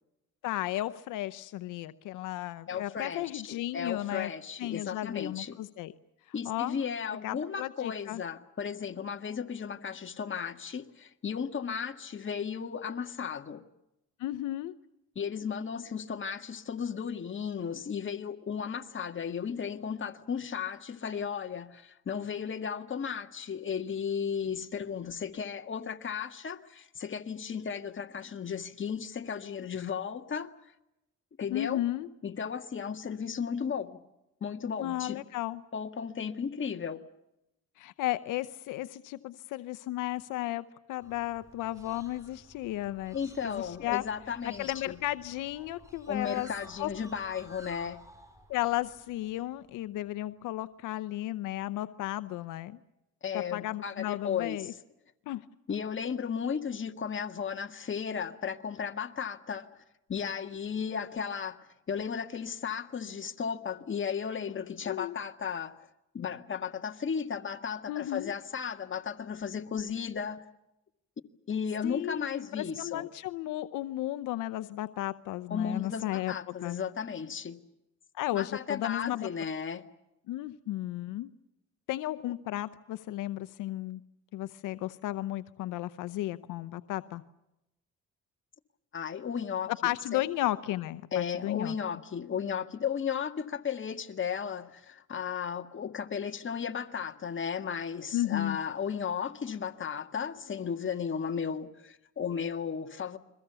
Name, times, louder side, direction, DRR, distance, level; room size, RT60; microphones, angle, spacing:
voice 1, 0.4-4.3 4.6-5.9 6.4-6.8 7.2-8.2 14.2-14.7 31.5-32.1 34.8-35.6 37.8-43.2 43.4-44.0 44.4-46.5 46.8-46.9 48.5-52.8 53.3-54.7 55.3-55.4 64.9-65.1 67.9-68.3 71.8-76.3 76.6-76.8 78.1-79.3 80.3-81.3 81.9-84.0 84.3-87.2 89.7-91.7 98.1-98.6, left 15 dB, 90° left, 0.8 m, -34 dB
voice 2, 2.7-5.6 6.3-13.6 15.2-30.5 31.4-31.8 32.2-34.0 34.4-35.2 35.7-37.0 43.1-45.0 46.1-48.0 53.2-54.6 55.7-59.7 60.1-65.8 66.1-70.4 71.5-73.1 75.5-77.6 78.3-79.8 88.9-90.2 91.1-103.2, left 7 dB, 40° left, 1.9 m, -35 dB
sound 1, 41.0-50.1, equal, 10° right, 5.7 m, -54 dB
29.5 x 22.5 x 7.0 m
cardioid pair, 90°, 30 cm